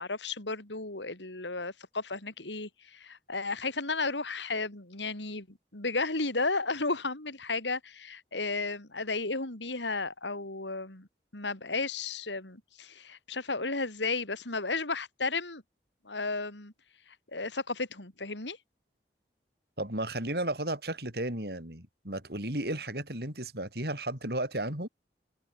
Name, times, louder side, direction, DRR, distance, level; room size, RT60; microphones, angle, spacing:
voice 1, 0.0-11.1 11.3-15.6 16.0-16.7 17.3-18.6, left 3 dB, 85° left, 4.0 m, -33 dB
voice 2, 19.8-24.9, right 1 dB, 60° right, 6.0 m, -34 dB
open air
head